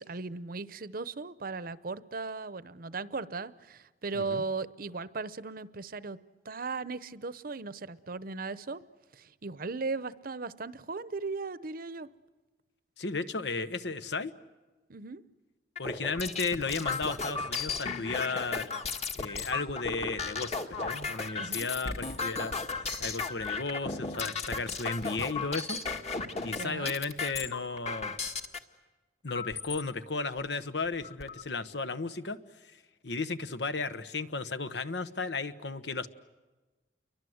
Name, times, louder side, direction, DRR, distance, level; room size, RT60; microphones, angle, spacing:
voice 1, 0.0-6.2 6.4-8.8 9.1-12.1 14.9-15.2 21.4-21.6 26.5-26.9, right 4 dB, 55° right, 16 dB, 0.9 m, -37 dB
voice 2, 13.0-14.3 15.8-18.7 19.1-22.5 23.0-25.8 26.4-28.1 29.2-32.4 33.0-36.1, left 4 dB, 80° left, 11 dB, 1.2 m, -34 dB
sound 1, 15.8-28.6 29.3-29.8 30.4-30.5 30.8-31.4, left 4 dB, 40° left, 1.7 m, -35 dB
29.5 x 23.5 x 7.9 m, 1.2 s
head